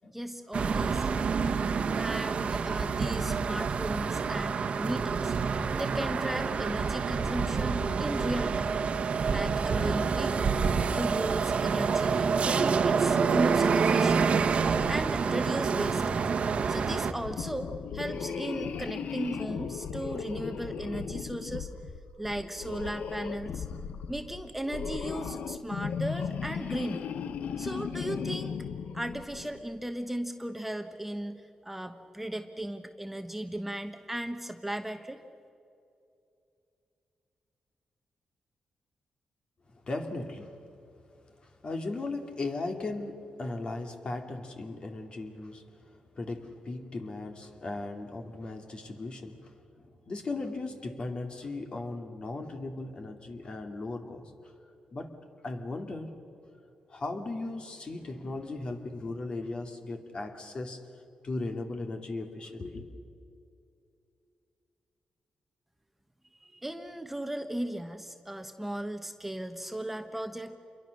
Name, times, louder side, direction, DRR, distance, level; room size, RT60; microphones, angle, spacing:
voice 1, 0.1-1.2 2.0-5.3 5.8-8.7 9.3-10.6 11.0-14.3 14.9-16.3 16.7-21.7 22.2-23.7 24.1-27.1 27.6-28.5 28.9-35.2 66.4-70.6, right 1 dB, 10° right, 7 dB, 1.1 m, -36 dB
sound 1, 0.5-17.1, right 5 dB, 60° right, 1.3 m, -27 dB
sound 2, 17.1-29.6, left 6 dB, 80° left, 0.9 m, -36 dB
voice 2, 39.7-40.6 41.4-45.7 46.1-54.3 54.9-55.1 55.4-56.1 56.9-60.9 61.2-62.8, left 2 dB, 45° left, 4 dB, 2.4 m, -37 dB
27.5 x 23.0 x 6.6 m, 2.7 s
cardioid pair, 90°, 2 cm